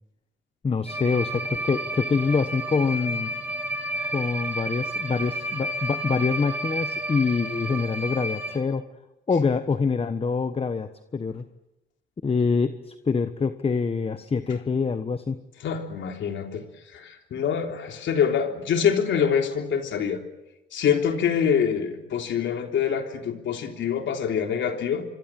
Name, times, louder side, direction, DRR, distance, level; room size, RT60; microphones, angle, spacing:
voice 1, 0.6-3.3 4.1-8.8 9.3-11.4 12.2-15.4, left 5 dB, 30° left, 10 dB, 1.2 m, -25 dB
sound 1, 0.9-8.6, right 1 dB, 10° right, 6.4 m, -31 dB
voice 2, 15.6-16.6 16.9-20.2 20.7-25.0, left 7 dB, 70° left, 4 dB, 3.5 m, -25 dB
25.5 x 24.5 x 7.5 m, 0.97 s
cardioid pair, 90°, 20 cm